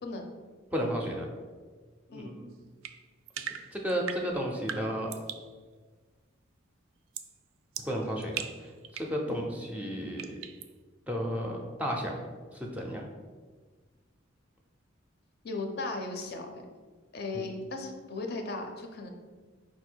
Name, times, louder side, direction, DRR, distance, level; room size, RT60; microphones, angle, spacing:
voice 1, 0.7-1.2 2.1-2.5 3.7-5.1 7.8-10.3 11.1-12.1 12.5-13.1 17.3-17.4, equal, 5° right, 0 dB, 0.4 m, -33 dB
sound 1, 2.8-5.5 7.1-7.4 7.7-9.2 10.2-10.7, right 8 dB, 80° right, 0.3 m, -40 dB
voice 2, 15.4-16.5 17.1-19.1, left 3 dB, 50° left, 3 dB, 0.5 m, -36 dB
4.8 x 2.3 x 4.4 m, 1.4 s
head